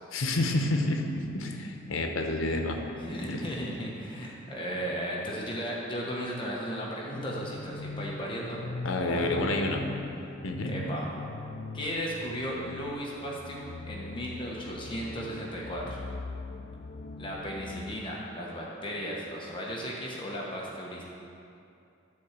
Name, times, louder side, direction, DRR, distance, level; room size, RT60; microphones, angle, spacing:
voice 1, 0.1-2.8 3.3-3.4 8.8-9.8 10.4-10.8, left 2 dB, 85° left, 3 dB, 0.9 m, -29 dB
voice 2, 3.0-8.6 9.0-9.6 10.6-11.1 11.7-16.0 17.2-21.0, equal, 25° left, -4 dB, 1.1 m, -35 dB
sound 1, 7.1-17.9, left 3 dB, 45° left, 0.4 m, -41 dB
10.0 x 4.3 x 7.3 m, 2.6 s
head